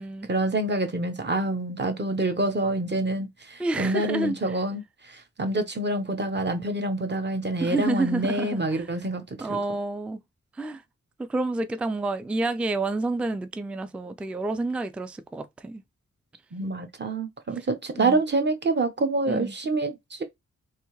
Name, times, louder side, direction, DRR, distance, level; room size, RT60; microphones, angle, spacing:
voice 1, 0.3-4.8 5.1-9.6 16.5-20.2, right 2 dB, 35° right, 1.0 m, -27 dB
voice 2, 3.6-4.6 7.6-8.8 9.4-10.2 10.6-10.8 11.2-15.8 18.0-18.2 19.3-19.5, right 2 dB, 5° right, 0.3 m, -29 dB
3.3 x 2.8 x 3.1 m
cardioid pair, 60°, 29 cm